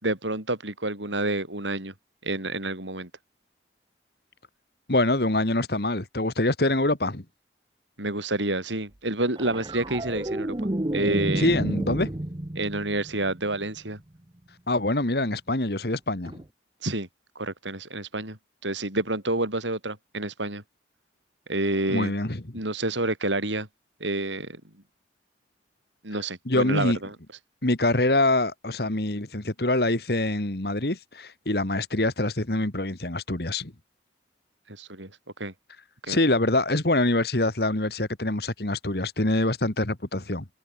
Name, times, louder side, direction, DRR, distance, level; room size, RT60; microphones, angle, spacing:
voice 1, 0.0-1.9 2.2-3.1 8.0-10.6 10.9-11.5 12.6-14.0 16.8-17.1 17.4-20.6 21.5-22.1 22.5-23.7 24.0-24.6 26.0-27.1 34.7-35.1 35.4-35.5 36.0-36.2, right 2 dB, 90° right, 7.5 m, -29 dB
voice 2, 4.9-7.2 11.4-12.1 14.7-16.4 21.9-22.6 26.5-27.0 27.6-33.7 36.1-40.5, left 2 dB, 55° left, 2.0 m, -25 dB
sound 1, 9.4-13.9 16.3-16.4, right 1 dB, 25° right, 0.9 m, -31 dB
head